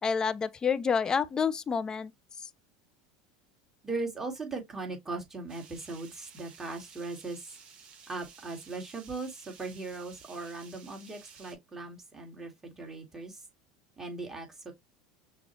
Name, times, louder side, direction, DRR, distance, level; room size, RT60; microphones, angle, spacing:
voice 1, 0.0-2.1 2.4-2.5, left 6 dB, 25° left, 0.5 m, -28 dB
voice 2, 3.8-7.5 8.1-13.4 14.0-14.7, right 3 dB, 15° right, 2.0 m, -39 dB
sound 1, 5.5-11.5, right 6 dB, 40° right, 1.7 m, -54 dB
6.0 x 2.4 x 3.0 m
supercardioid pair, 100°, 3 cm